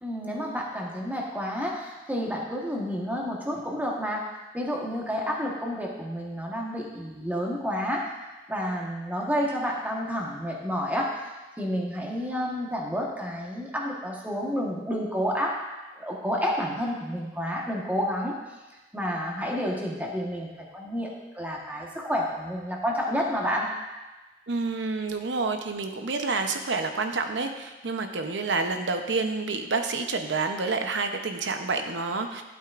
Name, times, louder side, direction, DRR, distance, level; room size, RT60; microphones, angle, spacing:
voice 1, 0.0-4.3 4.5-8.1 8.5-11.1 11.6-15.6 16.0-18.3 18.9-23.7, equal, 10° right, -2 dB, 1.3 m, -30 dB
voice 2, 24.5-32.4, right 3 dB, 75° right, 6 dB, 0.8 m, -28 dB
11.5 x 8.1 x 2.5 m, 1.2 s
head